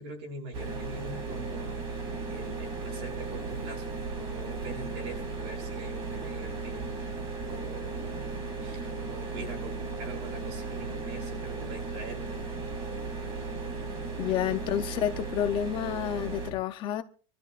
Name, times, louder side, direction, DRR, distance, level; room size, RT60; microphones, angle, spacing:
voice 1, 0.0-7.2 7.5-8.8 9.1-12.4 14.2-14.5, right 2 dB, 55° right, 7.1 m, -44 dB
sound 1, 0.5-16.5, right 3 dB, 35° right, 3.4 m, -36 dB
voice 2, 14.2-17.0, left 11 dB, 30° left, 0.7 m, -29 dB
25.0 x 13.5 x 2.5 m
supercardioid pair, 165°, 17 cm